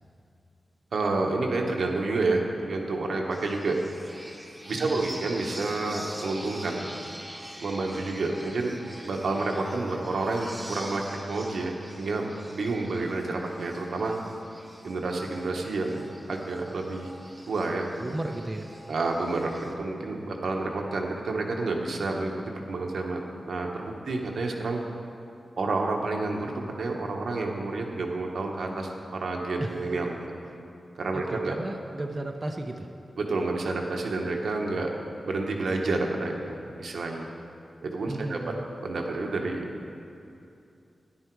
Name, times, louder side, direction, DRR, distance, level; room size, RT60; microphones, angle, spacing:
voice 1, 0.9-3.8 4.7-6.9 7.6-8.8 9.0-11.0 11.3-14.1 14.8-17.1 17.5-17.9 18.9-22.3 22.7-24.8 25.6-26.5 26.8-30.2 31.0-31.5 33.2-34.9 35.2-36.5 36.8-37.3 37.8-38.4 38.8-39.9, right 3 dB, 80° right, 1 dB, 1.1 m, -29 dB
sound 1, 3.3-19.7, equal, 5° right, 1.2 m, -45 dB
voice 2, 18.0-18.7 29.6-29.8 31.1-32.9 38.1-38.6, right 2 dB, 30° right, 3 dB, 0.6 m, -34 dB
10.5 x 9.9 x 4.7 m, 2.7 s
wide cardioid pair, 105°, 0 cm